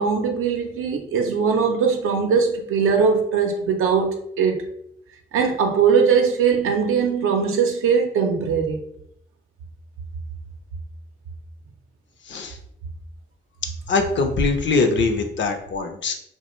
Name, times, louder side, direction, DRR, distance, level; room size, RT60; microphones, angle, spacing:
voice 1, 0.0-4.6 5.3-8.8, right 6 dB, 85° right, 4 dB, 0.5 m, -20 dB
voice 2, 12.3-12.6 13.9-16.1, left 3 dB, 60° left, 6 dB, 0.5 m, -22 dB
2.4 x 2.1 x 2.9 m, 0.72 s
cardioid pair, 60°, 21 cm